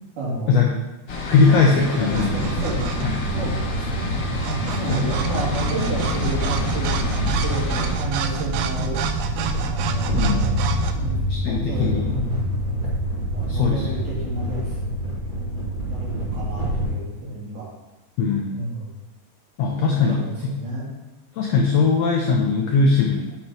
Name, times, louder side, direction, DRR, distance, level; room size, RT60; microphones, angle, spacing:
voice 1, 0.2-0.7 1.2-1.5 1.8-3.1 3.4-4.2 4.6-9.0 9.7-12.4 13.3-15.1 15.8-17.7 18.5-19.0 19.7-20.9, right 1 dB, 70° right, -8 dB, 4.5 m, -31 dB
machinery close to home, 1.1-7.9, left 3 dB, 55° left, 1.8 m, -30 dB
voice 2, 1.3-2.3 3.0-3.2 4.9-5.1 10.1-10.5 11.3-12.1 13.5-13.8 18.2-18.5 19.6-20.2 20.4-20.5 21.4-23.4, left 4 dB, 85° left, 0 dB, 1.4 m, -20 dB
sound 1, 2.1-16.9, equal, 20° right, 1.4 m, -27 dB
sound 2, 2.1-3.3 4.0-10.9, right 9 dB, 90° right, 2.2 m, -30 dB
7.9 x 5.6 x 4.3 m, 1.1 s
omnidirectional pair, 3.8 m